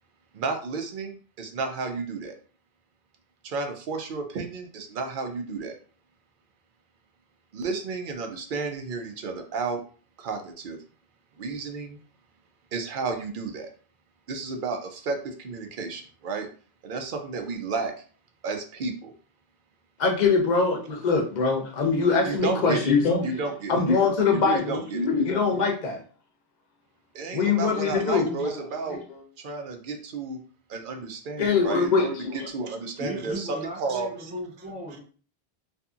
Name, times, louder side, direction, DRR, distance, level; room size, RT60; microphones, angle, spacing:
voice 1, 0.3-2.3 3.4-5.8 7.5-9.8 10.2-10.8 11.3-12.0 12.7-13.7 14.3-16.5 16.8-17.9 18.4-19.1 22.2-22.9 23.2-23.7 24.3-25.0 27.1-29.0 29.4-30.4 30.7-34.3, right 4 dB, 60° right, 5 dB, 0.7 m, -32 dB
voice 2, 20.0-23.4 23.7-26.0 27.3-28.6 28.9-29.2 31.4-32.5, left 4 dB, 50° left, 2 dB, 0.7 m, -23 dB
voice 3, 33.0-35.0, equal, 10° right, -1 dB, 0.3 m, -36 dB
2.7 x 2.5 x 2.3 m, 0.41 s
omnidirectional pair, 1.1 m